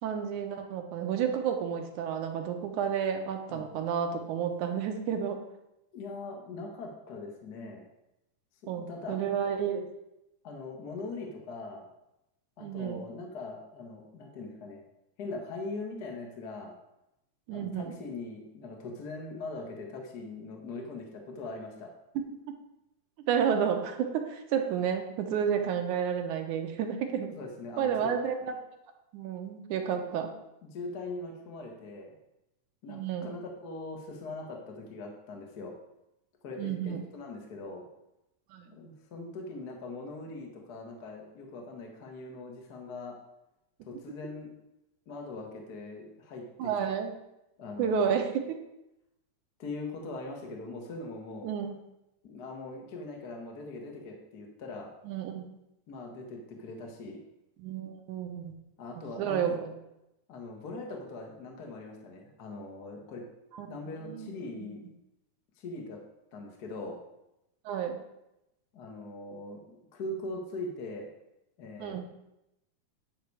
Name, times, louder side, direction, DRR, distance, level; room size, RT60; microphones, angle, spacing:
voice 1, 0.0-5.4 8.7-9.9 12.6-13.1 17.5-18.0 22.2-22.3 23.3-27.4 27.8-28.6 29.1-30.3 32.9-33.4 36.6-37.0 38.5-38.7 46.6-47.1 47.8-48.6 51.4-51.8 55.1-55.5 57.6-58.6 59.0-59.7 63.5-63.7 64.1-64.4 67.7-68.0 71.8-72.0, right 7 dB, 75° right, 4 dB, 2.3 m, -31 dB
voice 2, 5.9-7.8 8.8-9.2 10.4-11.9 12.6-14.8 15.2-16.7 17.5-21.9 27.3-28.1 30.6-32.1 32.8-35.7 36.4-37.8 38.7-43.2 43.9-44.6 45.1-46.7 47.6-48.1 49.6-51.5 52.2-54.9 55.9-57.2 58.8-59.6 60.3-63.2 63.6-64.8 65.6-66.0 66.3-67.0 68.7-71.1 71.6-72.0, left 2 dB, 45° left, 1 dB, 1.3 m, -41 dB
10.0 x 5.8 x 4.8 m, 0.88 s
omnidirectional pair, 3.7 m